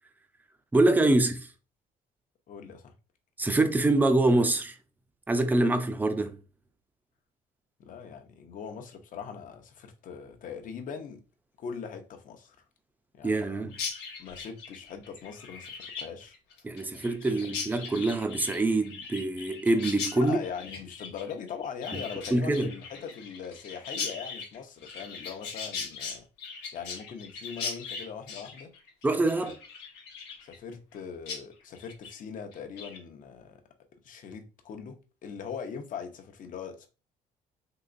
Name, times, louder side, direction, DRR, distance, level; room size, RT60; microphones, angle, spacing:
voice 1, 0.7-1.5 3.4-4.8 5.3-6.4 13.2-13.7 16.6-20.4 22.3-22.7 29.0-29.6, right 2 dB, 10° right, 0.5 m, -25 dB
voice 2, 2.5-2.9 7.8-11.2 11.6-12.6 13.1-13.7 14.2-16.4 20.2-26.2 26.7-28.7 29.4-29.5 30.4-33.6 34.0-36.9, left 6 dB, 50° left, 0.8 m, -41 dB
Chirp tweet, 13.7-31.0 31.3-31.4 31.7-32.1 32.5-33.0, left 5 dB, 85° left, 0.9 m, -39 dB
3.8 x 2.9 x 2.5 m
cardioid pair, 110°, 17 cm